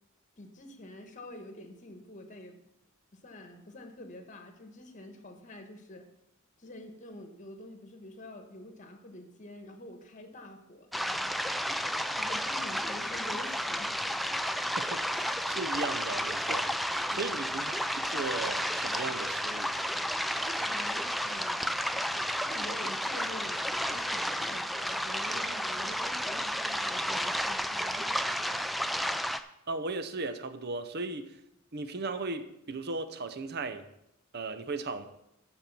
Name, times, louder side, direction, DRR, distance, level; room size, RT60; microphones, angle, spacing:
voice 1, 0.4-2.6 3.1-6.1 6.6-11.1 11.9-14.0 17.1-17.4 20.4-21.8 22.4-28.1, left 1 dB, 35° left, 6 dB, 1.4 m, -47 dB
sound 1, 10.9-29.4, equal, ahead, 0.3 m, -32 dB
voice 2, 14.8-16.7 17.1-19.7 29.7-31.4 31.7-33.9 34.3-35.1, right 3 dB, 50° right, 10 dB, 0.7 m, -36 dB
13.0 x 4.4 x 6.8 m, 0.82 s
head